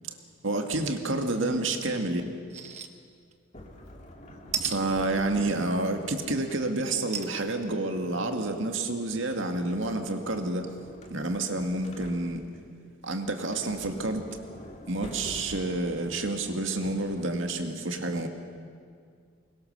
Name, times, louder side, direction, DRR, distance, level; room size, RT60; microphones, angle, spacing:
voice 1, 0.4-2.2 4.6-10.7 11.1-12.4 13.1-14.2 14.9-18.3, right 2 dB, 75° right, 5 dB, 1.9 m, -29 dB
sound 1, 2.5-2.9 3.3-3.4 4.5-4.8 7.1-7.4 7.9-8.0 8.3-8.4, right 7 dB, 35° right, 1.1 m, -33 dB
Sliding door, 3.5-7.1 9.1-12.7 13.2-17.6, left 1 dB, 35° left, 2.4 m, -47 dB
23.5 x 21.0 x 6.8 m, 2.2 s
head